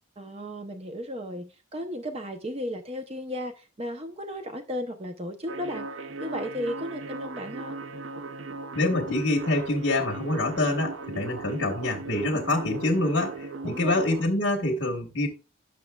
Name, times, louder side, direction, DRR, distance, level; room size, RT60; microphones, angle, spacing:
voice 1, 0.2-5.9 6.2-7.8 12.3-12.5 13.6-14.0, equal, 30° right, 0.7 m, -35 dB
sound 1, 5.5-14.3, right 3 dB, 70° right, 0.6 m, -38 dB
voice 2, 8.7-15.3, left 2 dB, 60° left, 1.6 m, -26 dB
10.5 x 6.8 x 2.3 m
head